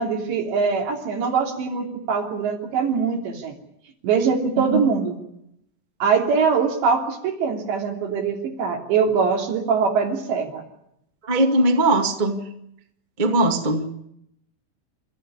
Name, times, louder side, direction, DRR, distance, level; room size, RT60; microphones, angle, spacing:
voice 1, 0.0-3.5 4.0-5.2 6.0-10.6, right 5 dB, 80° right, 1 dB, 5.2 m, -22 dB
voice 2, 11.3-12.5 13.2-13.9, right 1 dB, 50° right, 3 dB, 0.5 m, -20 dB
29.5 x 14.0 x 9.9 m, 0.80 s
omnidirectional pair, 5.0 m